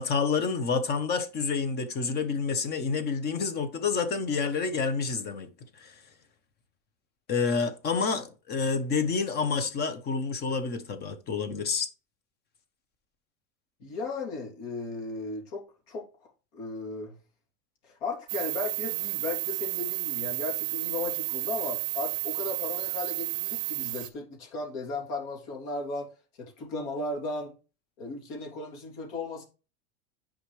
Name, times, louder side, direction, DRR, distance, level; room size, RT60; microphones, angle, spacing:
voice 1, 0.0-5.5 5.7-6.0 7.3-11.9, left 5 dB, 30° left, 1.1 m, -28 dB
voice 2, 13.8-16.0 16.5-17.2 17.8-26.1 26.4-27.5 28.0-29.4, left 3 dB, 60° left, 3.2 m, -36 dB
sound 1, 18.3-24.1, right 23 dB, 55° right, 0.6 m, -32 dB
10.0 x 5.1 x 3.3 m
supercardioid pair, 160°, 33 cm